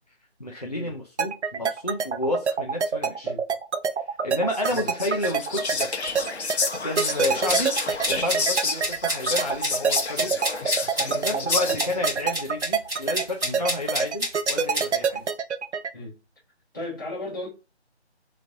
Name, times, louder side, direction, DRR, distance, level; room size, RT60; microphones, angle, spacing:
voice 1, 0.4-3.3 4.0-5.9 6.8-7.7 8.1-10.3 11.2-15.2, left 1 dB, 35° left, 0.5 m, -30 dB
sound 1, 1.2-15.9, right 6 dB, 75° right, 0.6 m, -25 dB
Whispering, 4.5-12.1, left 4 dB, 70° left, 1.0 m, -30 dB
sound 2, 6.9-14.9, equal, 15° right, 2.2 m, -29 dB
voice 2, 10.9-11.8 13.4-13.6 15.1-15.2 15.9-16.2 16.7-17.5, left 1 dB, 20° left, 1.3 m, -36 dB
3.9 x 3.1 x 2.6 m
figure-of-eight pair, 180°, 34 cm